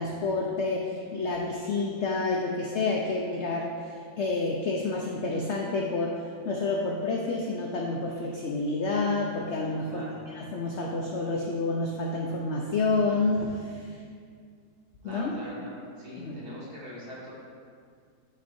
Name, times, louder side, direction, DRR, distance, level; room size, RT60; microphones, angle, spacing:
voice 1, 0.0-3.7 4.2-6.2 6.5-10.0 10.3-13.8 15.0-15.3 16.2-16.3, left 3 dB, 75° left, -1 dB, 0.6 m, -29 dB
voice 2, 9.8-10.2 15.0-17.3, equal, 65° right, -8 dB, 2.3 m, -42 dB
10.0 x 4.3 x 2.6 m, 2.2 s
omnidirectional pair, 1.8 m